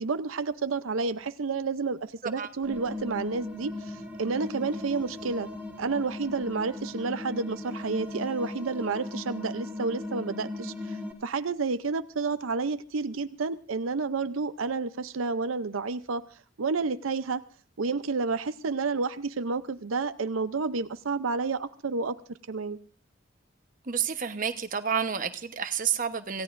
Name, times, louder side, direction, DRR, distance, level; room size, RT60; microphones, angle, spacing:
voice 1, 0.0-5.5 5.8-16.2 16.6-17.4 17.8-22.2 22.5-22.8, right 4 dB, 90° right, 12 dB, 0.6 m, -30 dB
sound 1, 2.6-11.1, left 2 dB, 10° right, 2.1 m, -38 dB
voice 2, 23.9-26.4, right 7 dB, 40° right, 8 dB, 1.0 m, -30 dB
26.5 x 16.0 x 2.6 m, 0.40 s
head